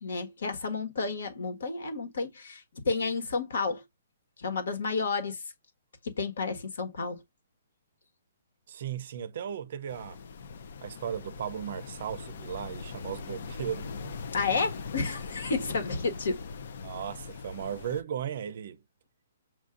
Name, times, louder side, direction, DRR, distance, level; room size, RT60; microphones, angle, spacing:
voice 1, 0.0-3.8 4.4-5.4 6.0-7.2 14.3-16.4, left 4 dB, 60° left, 1.5 m, -31 dB
voice 2, 8.7-10.2 10.8-14.2 16.8-18.8, right 9 dB, 40° right, 0.6 m, -36 dB
sound 1, 9.9-18.0, left 5 dB, 45° left, 0.5 m, -41 dB
7.2 x 2.6 x 2.5 m
hypercardioid pair, 180°, 0 cm